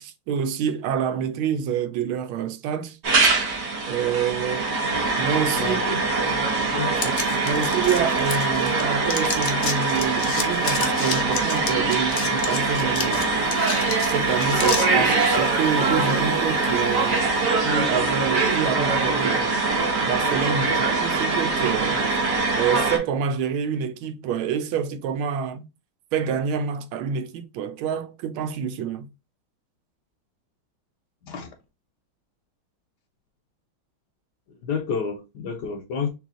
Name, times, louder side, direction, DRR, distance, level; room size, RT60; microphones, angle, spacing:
voice 1, 0.0-3.0 3.8-4.7 5.2-6.0 7.0-13.4 14.1-17.2 17.6-19.6 20.0-22.0 22.5-25.6 26.1-29.1, right 7 dB, 90° right, 1.5 m, -27 dB
sound 1, 3.0-23.0, right 3 dB, 50° right, 1.0 m, -23 dB
voice 2, 5.6-6.0 6.7-6.9 31.2-31.5 34.5-36.1, left 5 dB, 70° left, 1.0 m, -29 dB
sound 2, 7.0-8.8 9.1-14.9, left 5 dB, 90° left, 0.6 m, -31 dB
sound 3, 11.6-18.5, right 3 dB, 35° right, 0.7 m, -40 dB
3.3 x 3.1 x 3.6 m
omnidirectional pair, 2.2 m